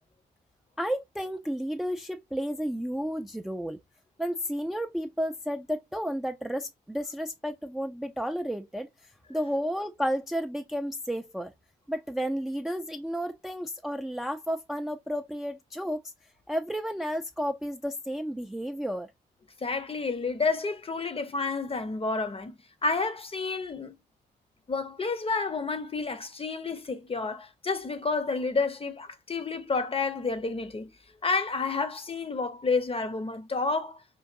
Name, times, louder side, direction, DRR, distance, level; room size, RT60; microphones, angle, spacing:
voice 1, 0.8-3.8 4.2-11.5 11.9-16.0 16.5-19.1, equal, ahead, 0.4 m, -32 dB
voice 2, 19.6-22.5 22.8-23.9 24.7-30.9 31.2-34.0, left 4 dB, 30° left, 0.7 m, -30 dB
4.6 x 2.5 x 2.4 m
hypercardioid pair, 40°, 20 cm